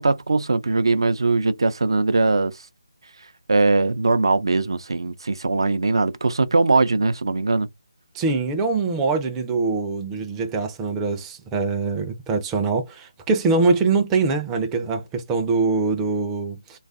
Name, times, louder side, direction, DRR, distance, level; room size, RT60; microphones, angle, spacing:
voice 1, 0.0-2.5 3.5-7.7, right 3 dB, 65° right, 0.5 m, -20 dB
voice 2, 8.1-16.8, right 4 dB, 10° right, 0.4 m, -23 dB
3.2 x 2.4 x 2.5 m
figure-of-eight pair, 155°, 3 cm